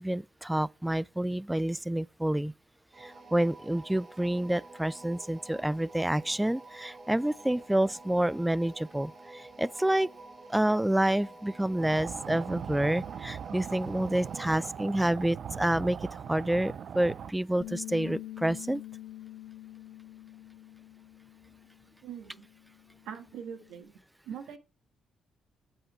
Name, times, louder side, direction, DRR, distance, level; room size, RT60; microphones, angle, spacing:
voice 1, 0.0-2.5 3.0-10.1 10.5-18.8, right 1 dB, 5° right, 0.3 m, -28 dB
sound 1, 2.9-14.8, right 2 dB, 35° right, 5.6 m, -49 dB
sound 2, 11.8-17.3, right 8 dB, 60° right, 0.7 m, -40 dB
Bass guitar, 17.6-21.9 22.2-23.8, left 14 dB, 75° left, 2.0 m, -46 dB
voice 2, 22.0-22.5 23.0-23.9 24.2-24.6, right 8 dB, 85° right, 1.6 m, -42 dB
8.7 x 8.0 x 3.3 m
cardioid pair, 90°, 0 cm